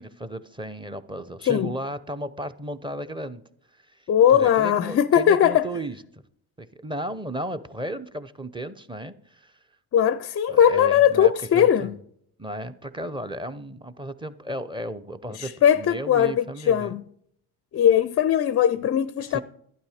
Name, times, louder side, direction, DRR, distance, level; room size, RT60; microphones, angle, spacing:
voice 1, 0.0-3.4 3.7-4.0 4.3-6.0 6.6-9.5 10.5-11.9 12.4-17.0 19.3-19.4, right 1 dB, 10° right, 0.8 m, -34 dB
voice 2, 4.1-5.7 9.9-11.9 15.3-17.0 17.7-19.4, left 9 dB, 35° left, 0.4 m, -20 dB
12.0 x 9.5 x 5.0 m
hypercardioid pair, 65°, 45 cm